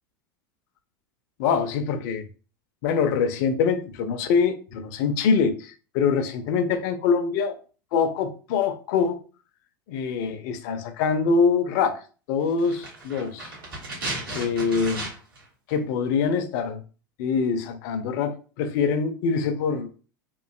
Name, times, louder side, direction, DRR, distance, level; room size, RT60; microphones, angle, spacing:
voice 1, 1.4-2.2 2.8-7.6 7.9-9.2 9.9-12.0 12.3-13.5 14.3-15.1 15.7-16.8 17.2-20.0, left 5 dB, 50° left, 0.4 m, -24 dB
sound 1, 12.6-15.4 15.7-15.8, right 2 dB, 70° right, 1.2 m, -34 dB
3.0 x 2.4 x 2.3 m
figure-of-eight pair, 90°, 12 cm